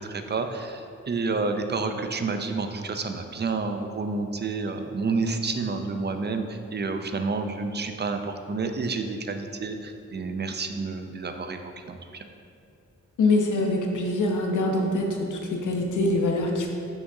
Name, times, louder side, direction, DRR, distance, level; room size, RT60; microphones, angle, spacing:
voice 1, 0.0-12.3, right 4 dB, 35° right, 6 dB, 0.5 m, -29 dB
voice 2, 13.2-16.7, left 2 dB, 90° left, 1 dB, 0.8 m, -24 dB
6.1 x 5.8 x 2.7 m, 2.5 s
cardioid pair, 65°, 30 cm